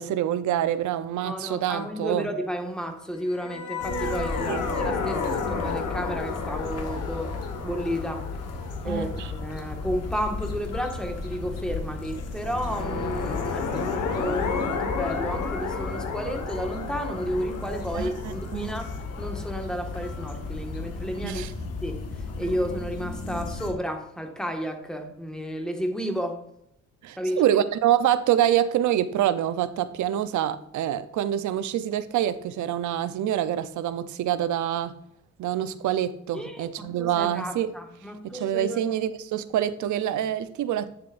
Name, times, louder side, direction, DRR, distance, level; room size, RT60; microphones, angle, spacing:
voice 1, 0.0-2.3 4.5-4.6 8.8-9.3 17.9-18.8 21.2-21.5 27.0-34.9 35.4-37.7 38.2-40.9, right 11 dB, 75° right, 13 dB, 0.7 m, -26 dB
voice 2, 1.2-7.4 7.6-8.3 8.8-21.4 21.8-22.0 22.4-26.4 27.2-27.4 36.3-38.9, equal, ahead, 4 dB, 1.6 m, -32 dB
sound 1, 3.3-10.5 12.4-20.2, left 4 dB, 70° left, 1.4 m, -32 dB
sound 2, 3.8-23.7, left 3 dB, 55° left, 1.5 m, -35 dB
9.8 x 7.4 x 2.5 m, 0.77 s
cardioid pair, 90°, 30 cm